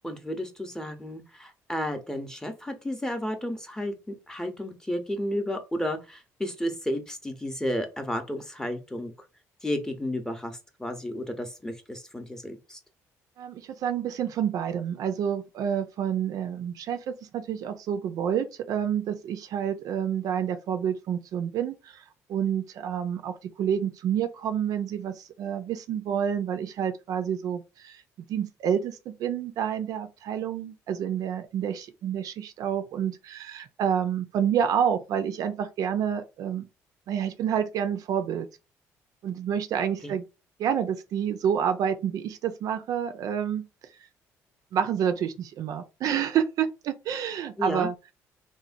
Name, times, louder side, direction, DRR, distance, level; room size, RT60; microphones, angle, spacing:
voice 1, 0.0-9.1 9.6-12.8 40.0-40.2 47.6-47.9, left 1 dB, 10° left, 0.7 m, -32 dB
voice 2, 13.4-22.0 22.3-28.0 28.3-36.7 37.1-38.5 39.2-40.2 40.6-43.7 44.7-47.9, right 8 dB, 65° right, 0.4 m, -28 dB
3.0 x 2.1 x 2.5 m
supercardioid pair, 75°, 7 cm